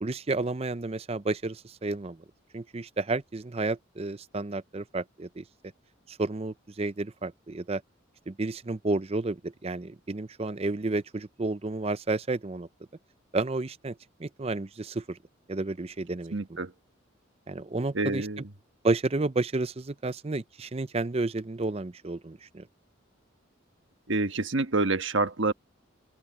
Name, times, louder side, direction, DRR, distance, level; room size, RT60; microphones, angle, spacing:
voice 1, 0.0-2.2 2.5-5.4 6.1-7.8 8.3-12.7 13.3-15.2 15.5-16.6 17.5-18.3 18.8-22.6, right 2 dB, 30° right, 0.6 m, -31 dB
voice 2, 16.3-16.7 17.9-18.4 24.1-25.5, right 3 dB, 65° right, 1.4 m, -27 dB
open air
head